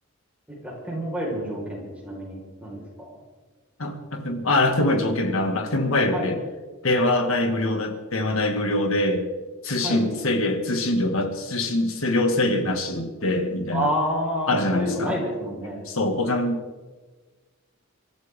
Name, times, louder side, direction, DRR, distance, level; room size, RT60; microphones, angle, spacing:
voice 1, 0.5-3.2 6.1-6.3 9.8-10.1 13.7-15.8, equal, 5° right, -3 dB, 5.1 m, -29 dB
voice 2, 3.8-6.4 6.8-9.2 9.6-13.9 14.5-15.1 15.9-16.6, left 2 dB, 65° left, 5 dB, 2.3 m, -23 dB
24.5 x 14.0 x 3.8 m, 1.3 s
head